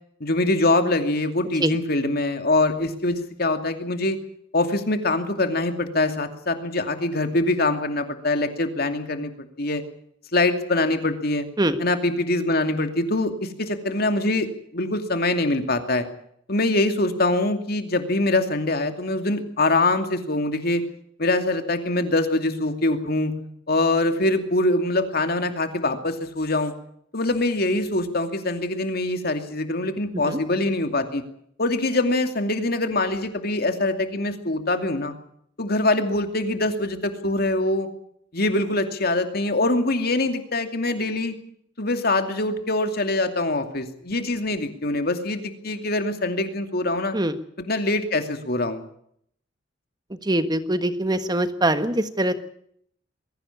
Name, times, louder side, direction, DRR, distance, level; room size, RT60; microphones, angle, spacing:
voice 1, 0.2-4.2 4.5-9.3 9.6-9.8 10.3-11.5 11.8-14.5 14.7-16.1 16.5-20.8 21.2-23.4 23.7-26.7 27.1-31.2 31.6-35.1 35.6-37.9 38.3-41.3 41.8-47.1 47.6-48.8, left 2 dB, 55° left, 7 dB, 2.6 m, -23 dB
voice 2, 50.1-52.3, right 1 dB, 20° right, 10 dB, 1.5 m, -23 dB
22.0 x 16.5 x 8.5 m, 0.68 s
head